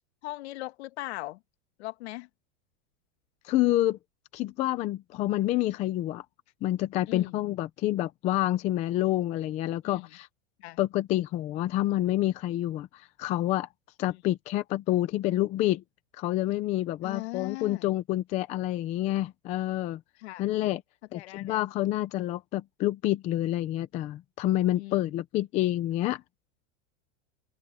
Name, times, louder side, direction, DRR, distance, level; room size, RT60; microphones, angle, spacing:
voice 1, 0.2-1.4 1.8-2.3 7.1-7.4 9.8-10.1 10.6-10.8 14.1-14.2 17.0-17.9 20.2-20.5 21.1-21.6 24.7-25.2, left 19 dB, 60° left, 1.6 m, -39 dB
voice 2, 3.4-4.0 4.3-6.2 6.6-10.3 10.8-13.7 14.0-15.8 16.2-20.0 20.4-20.8 21.1-26.2, left 15 dB, 20° left, 0.6 m, -28 dB
supercardioid pair, 175°, 36 cm